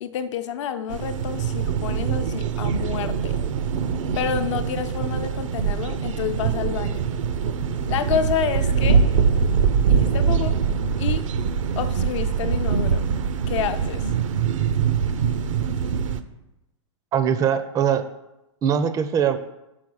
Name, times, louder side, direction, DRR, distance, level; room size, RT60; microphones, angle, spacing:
voice 1, 0.0-3.4 4.2-7.1 7.9-9.1 9.9-10.6 11.0-11.3 11.8-13.1 13.5-14.1, left 8 dB, 70° left, 10 dB, 0.7 m, -29 dB
sound 1, 0.9-16.2, right 6 dB, 80° right, 0.6 m, -23 dB
voice 2, 17.1-18.1 18.6-19.4, right 8 dB, 20° right, 11 dB, 0.4 m, -21 dB
5.8 x 4.6 x 6.2 m, 0.93 s
hypercardioid pair, 120°, 16 cm